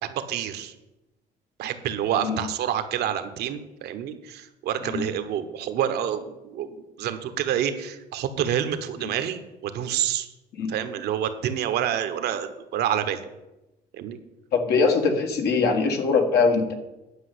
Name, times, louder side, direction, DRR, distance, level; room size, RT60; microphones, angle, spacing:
voice 1, 0.0-0.7 1.6-10.3 10.7-13.2 13.9-14.2, right 10 dB, 75° right, 9 dB, 1.2 m, -28 dB
voice 2, 14.5-16.7, left 4 dB, 70° left, 4 dB, 1.7 m, -22 dB
10.0 x 5.4 x 8.4 m, 0.98 s
cardioid pair, 110°, 17 cm